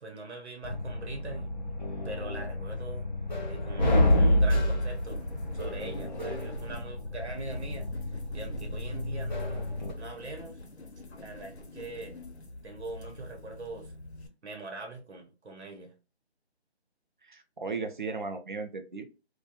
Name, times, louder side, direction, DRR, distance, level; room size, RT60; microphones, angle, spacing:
voice 1, 0.0-1.5 2.0-3.1 3.5-5.2 5.5-9.7 10.0-10.6 11.2-12.2 12.6-13.9 14.4-15.9, right 2 dB, 80° right, 0.8 m, -42 dB
sound 1, 0.6-9.9, left 1 dB, 45° left, 0.5 m, -29 dB
sound 2, 4.1-14.3, left 1 dB, 70° left, 0.8 m, -46 dB
voice 2, 17.2-19.1, right 4 dB, 50° right, 0.5 m, -36 dB
2.3 x 2.2 x 2.8 m
figure-of-eight pair, 170°, 33 cm